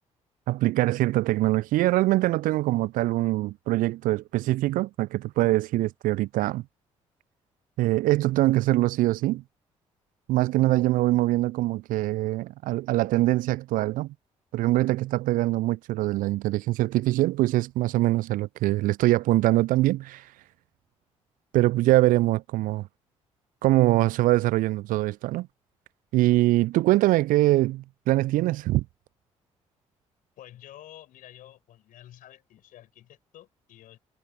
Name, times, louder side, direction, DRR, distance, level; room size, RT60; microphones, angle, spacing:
voice 1, 0.5-6.6 7.8-9.4 10.3-14.1 14.5-20.3 21.5-22.9 23.6-25.5 26.1-28.8, right 17 dB, 60° right, 0.5 m, -23 dB
voice 2, 30.4-34.0, left 13 dB, 60° left, 5.5 m, -50 dB
figure-of-eight pair, 45°, 16 cm